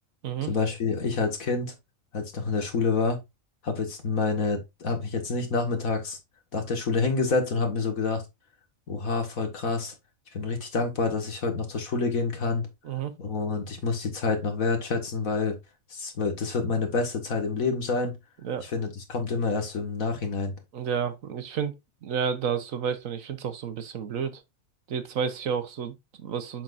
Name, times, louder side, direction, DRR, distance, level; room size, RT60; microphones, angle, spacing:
voice 1, 0.5-1.7 2.1-3.2 3.6-6.2 6.5-8.2 8.9-9.9 10.3-12.6 13.2-15.6 15.9-18.2 18.6-20.5, left 4 dB, 90° left, 2.2 m, -27 dB
voice 2, 20.7-21.8 22.0-24.4 24.9-26.6, right 7 dB, 75° right, 1.4 m, -31 dB
7.2 x 6.1 x 2.5 m
omnidirectional pair, 1.4 m